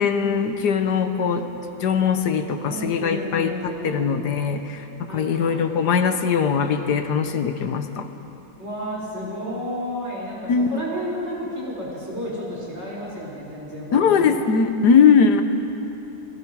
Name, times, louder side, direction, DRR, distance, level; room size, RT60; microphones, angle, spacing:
voice 1, 0.0-1.5 1.8-8.1 10.5-10.8 13.9-15.4, left 6 dB, 90° left, 8 dB, 1.7 m, -20 dB
voice 2, 2.6-4.3 5.1-5.7 8.6-14.3, equal, 40° right, -6 dB, 6.0 m, -32 dB
28.0 x 20.5 x 4.7 m, 2.9 s
omnidirectional pair, 1.7 m